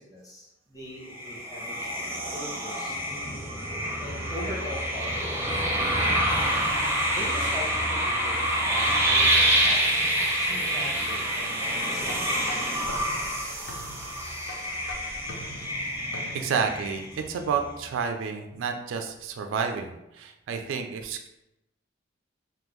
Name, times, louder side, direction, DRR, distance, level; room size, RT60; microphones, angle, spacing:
voice 1, 0.0-3.4 4.0-5.7 7.1-9.8 10.4-12.6, left 1 dB, 20° left, -4 dB, 0.8 m, -41 dB
sound 1, 1.1-17.4, right 1 dB, 10° right, 0.5 m, -27 dB
sound 2, 12.0-16.7, left 1 dB, 80° left, 0.6 m, -42 dB
voice 2, 16.3-21.3, right 6 dB, 75° right, 5 dB, 0.3 m, -30 dB
3.5 x 2.1 x 3.0 m, 0.88 s
head